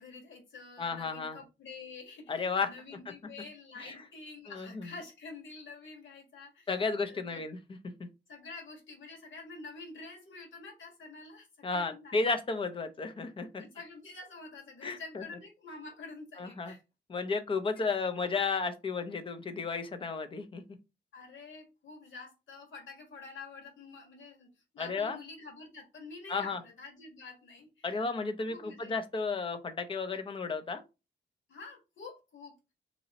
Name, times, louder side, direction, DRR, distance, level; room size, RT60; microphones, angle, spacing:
voice 1, 0.0-7.4 8.3-12.2 13.6-16.8 17.7-17.9 21.1-24.5 24.7-27.9 28.5-28.9 31.5-32.7, left 4 dB, 90° left, 1.4 m, -48 dB
voice 2, 0.8-1.4 2.3-2.7 3.8-4.0 4.5-4.9 6.7-7.6 11.6-13.6 14.8-15.2 16.4-16.7 17.1-20.6 24.8-25.2 26.3-26.6 27.8-30.8, left 4 dB, 30° left, 0.5 m, -33 dB
2.9 x 2.6 x 4.0 m
wide cardioid pair, 160°, 19 cm